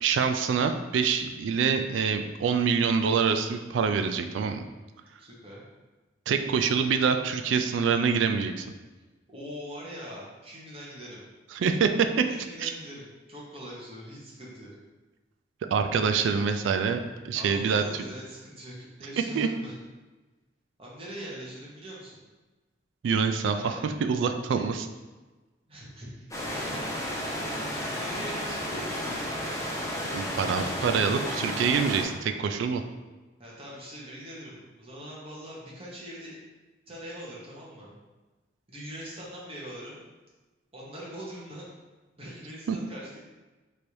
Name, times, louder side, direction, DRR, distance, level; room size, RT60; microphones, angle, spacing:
voice 1, 0.0-4.6 6.3-8.7 11.6-12.1 12.6-12.7 15.7-17.8 19.4-19.5 23.0-24.8 30.1-32.8 42.7-42.8, right 6 dB, 80° right, 6 dB, 0.3 m, -25 dB
voice 2, 5.2-5.6 9.3-11.2 12.2-14.7 17.4-19.7 20.8-22.2 23.5-23.8 24.5-24.7 25.7-26.3 26.5-27.1 27.8-29.0 33.4-36.3 36.9-37.9 38.7-40.0 40.7-41.6 42.2-43.3, equal, 30° right, -6 dB, 1.0 m, -42 dB
sound 1, 26.3-32.0, equal, 15° left, 0.7 m, -32 dB
3.2 x 2.6 x 4.5 m, 1.2 s
head